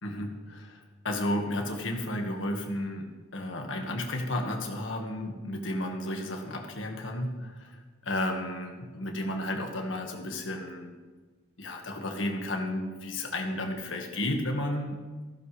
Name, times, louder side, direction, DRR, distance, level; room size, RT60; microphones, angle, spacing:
voice 1, 0.0-10.9 11.6-15.0, left 1 dB, 80° left, 2 dB, 1.7 m, -33 dB
15.0 x 13.0 x 3.3 m, 1.3 s
head